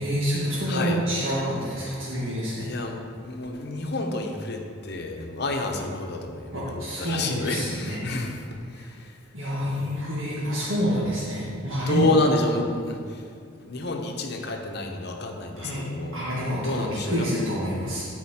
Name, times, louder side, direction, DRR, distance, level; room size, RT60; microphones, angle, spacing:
voice 1, 0.0-2.7 6.5-8.1 8.7-8.9 9.3-12.1 15.6-15.8 16.1-18.1, equal, 90° right, -8 dB, 1.6 m, -28 dB
voice 2, 0.7-1.0 2.6-9.2 11.7-13.3 13.5-16.2 16.6-17.3, left 2 dB, 55° left, 2 dB, 0.9 m, -29 dB
13.0 x 4.4 x 4.3 m, 2.3 s
head